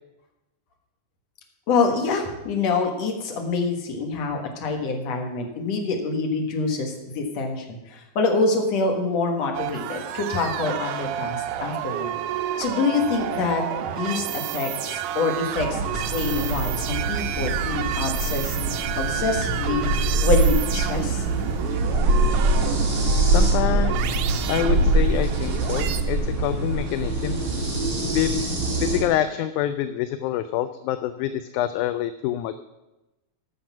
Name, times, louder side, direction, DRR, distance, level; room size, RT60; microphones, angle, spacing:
voice 1, 1.7-12.1 12.6-18.7 19.0-21.2, left 4 dB, 60° left, 2 dB, 2.5 m, -26 dB
sound 1, 9.5-26.0, right 11 dB, 80° right, 2.2 m, -30 dB
sound 2, 15.6-29.0, right 2 dB, 45° right, 4.9 m, -24 dB
voice 2, 23.3-23.9 24.3-27.4 28.1-28.3 28.8-32.6, left 12 dB, 80° left, 11 dB, 1.9 m, -26 dB
13.5 x 6.4 x 6.0 m, 1.0 s
omnidirectional pair, 3.7 m